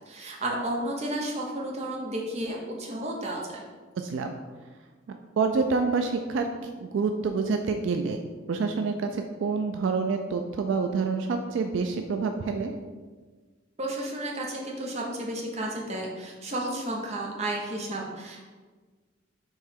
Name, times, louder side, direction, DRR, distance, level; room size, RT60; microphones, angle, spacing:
voice 1, 0.0-3.7 13.8-18.4, right 1 dB, 35° right, -1 dB, 0.7 m, -32 dB
voice 2, 4.0-4.4 5.1-6.5 6.8-8.2 8.5-12.7, right 4 dB, 75° right, 5 dB, 0.3 m, -27 dB
4.5 x 3.1 x 3.6 m, 1.4 s
head